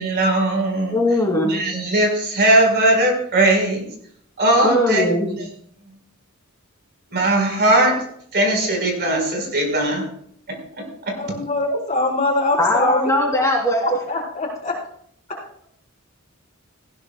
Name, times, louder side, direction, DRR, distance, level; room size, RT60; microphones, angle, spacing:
voice 1, 0.0-1.0 1.5-3.8 4.4-5.0 7.1-7.9 8.3-10.0 11.1-11.2, right 1 dB, 50° right, 2 dB, 4.6 m, -18 dB
voice 2, 0.9-1.6 4.6-5.4 12.6-14.0, left 1 dB, 15° left, -1 dB, 2.8 m, -19 dB
voice 3, 11.2-13.1 13.8-14.7, left 2 dB, 35° left, -3 dB, 4.4 m, -23 dB
18.5 x 15.5 x 2.3 m, 0.66 s
head